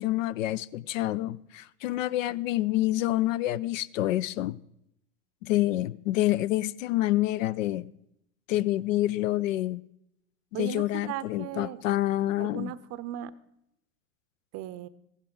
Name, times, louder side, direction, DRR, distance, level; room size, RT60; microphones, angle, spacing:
voice 1, 0.0-4.6 5.4-7.9 8.5-9.8 10.6-12.7, left 15 dB, 65° left, 19 dB, 0.5 m, -27 dB
voice 2, 10.5-11.8 12.4-13.3 14.5-14.9, right 12 dB, 35° right, 17 dB, 0.7 m, -37 dB
15.0 x 12.0 x 3.8 m, 0.80 s
hypercardioid pair, 90°, 42 cm